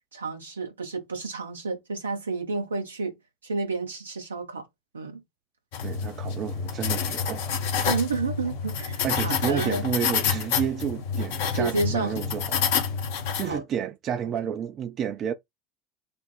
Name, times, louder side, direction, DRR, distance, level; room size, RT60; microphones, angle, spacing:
voice 1, 0.1-3.2 3.4-4.7 4.9-5.2 7.8-9.8 11.6-12.2 13.4-13.6, right 3 dB, 80° right, 0.8 m, -30 dB
sound 1, 5.7-13.6, left 6 dB, 65° left, 0.7 m, -28 dB
voice 2, 5.8-7.6 9.0-12.7 13.3-15.3, right 8 dB, 40° right, 0.4 m, -30 dB
3.4 x 2.0 x 4.1 m
figure-of-eight pair, 65°, 0 cm